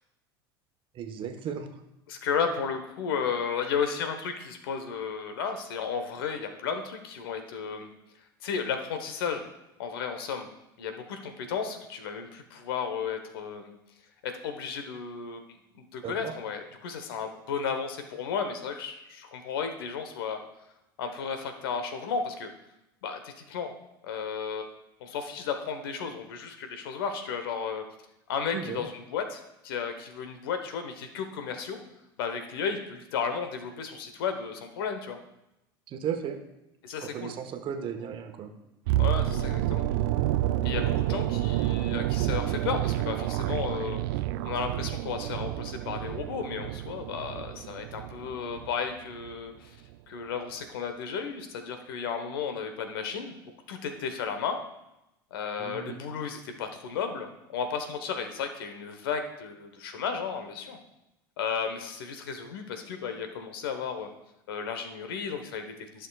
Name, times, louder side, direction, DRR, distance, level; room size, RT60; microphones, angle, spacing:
voice 1, 0.9-1.8 16.0-16.3 28.5-28.8 35.9-36.4 37.0-38.5 55.6-56.0, right 8 dB, 45° right, 6 dB, 1.2 m, -35 dB
voice 2, 2.1-7.9 8.4-9.5 9.8-10.5 10.8-13.7 14.2-15.4 15.7-20.4 21.0-22.5 23.0-23.7 24.0-24.7 25.0-27.8 28.3-31.8 32.2-35.2 36.8-37.3 39.0-39.8 40.6-49.8 50.1-53.3 53.7-54.6 55.3-60.8 61.4-64.1 64.5-66.1, left 6 dB, 75° left, 7 dB, 1.1 m, -33 dB
sound 1, 38.9-48.9 49.1-49.3, right 14 dB, 70° right, 0.4 m, -29 dB
14.5 x 6.4 x 2.4 m, 0.89 s
hypercardioid pair, 80°, 12 cm